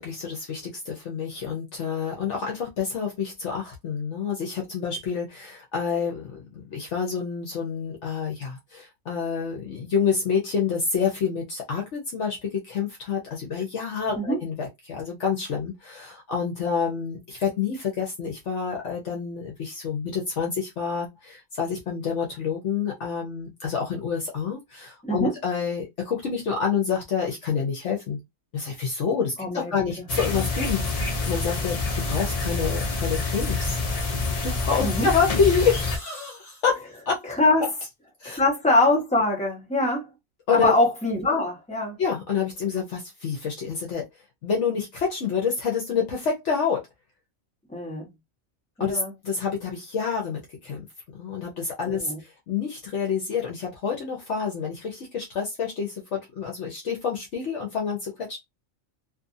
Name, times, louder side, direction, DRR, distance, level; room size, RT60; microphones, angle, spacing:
voice 1, 0.0-28.2 28.5-33.8 34.1-37.2 37.6-37.7 38.2-38.4 40.5-40.7 42.0-44.0 44.4-46.8 48.8-50.8 51.2-58.4, left 6 dB, 65° left, 1.0 m, -28 dB
voice 2, 29.4-29.7 34.8-35.1 37.2-37.7 38.2-40.0 40.5-42.0 47.7-48.1 48.8-49.1 51.9-52.2, left 2 dB, 5° left, 1.0 m, -23 dB
sound 1, 30.1-36.0, left 3 dB, 45° left, 0.4 m, -27 dB
2.6 x 2.6 x 2.6 m
omnidirectional pair, 1.4 m